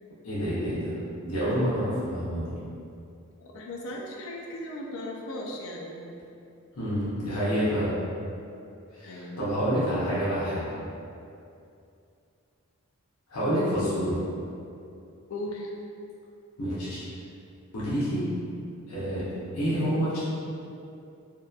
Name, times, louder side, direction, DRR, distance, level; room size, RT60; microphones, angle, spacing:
voice 1, 0.2-0.9 1.2-2.5 6.7-7.9 8.9-10.7 13.3-14.2 16.6-17.0 17.7-18.2 18.9-19.3 19.5-20.2, equal, 85° left, -10 dB, 0.7 m, -28 dB
voice 2, 3.4-6.1 9.0-9.4 15.3-15.7, left 1 dB, 65° left, -1 dB, 0.3 m, -37 dB
2.8 x 2.2 x 2.3 m, 2.6 s
head